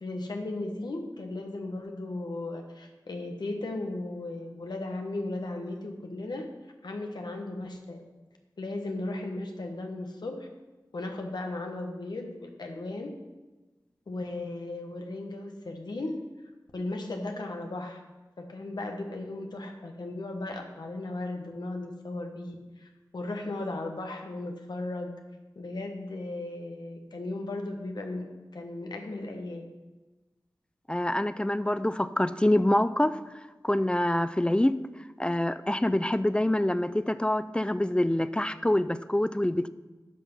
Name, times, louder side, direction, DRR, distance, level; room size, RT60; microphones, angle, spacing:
voice 1, 0.0-6.5 6.8-8.0 8.6-10.5 10.9-13.2 14.1-16.2 16.7-18.0 18.4-25.1 25.5-29.7, left 2 dB, 80° left, 3 dB, 1.3 m, -36 dB
voice 2, 30.9-33.2 33.6-34.8 35.2-39.7, left 1 dB, 15° left, 13 dB, 0.4 m, -26 dB
11.0 x 6.0 x 5.4 m, 1.1 s
wide cardioid pair, 55°, 7 cm